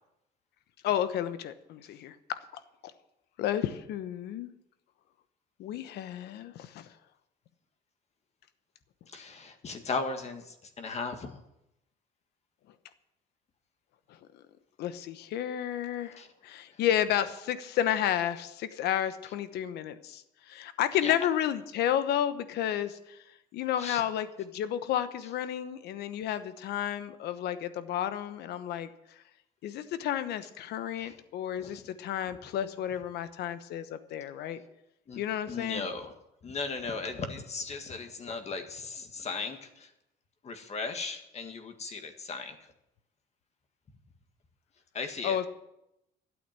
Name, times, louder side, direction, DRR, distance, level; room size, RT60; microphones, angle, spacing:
voice 1, 0.8-2.4 3.4-4.5 5.6-6.9 14.8-23.2 23.5-28.9 29.6-34.6 35.2-35.9 45.2-45.5, left 10 dB, 80° left, 12 dB, 1.0 m, -31 dB
voice 2, 9.1-11.3 16.0-16.3 16.7-16.8 21.0-21.1 23.8-24.0 31.0-31.1 31.5-31.8 35.1-35.2 35.5-36.1 36.4-39.9 40.4-42.6 44.9-45.5, left 4 dB, 40° left, 6 dB, 1.8 m, -37 dB
12.5 x 8.5 x 7.6 m, 0.84 s
cardioid pair, 110°, 17 cm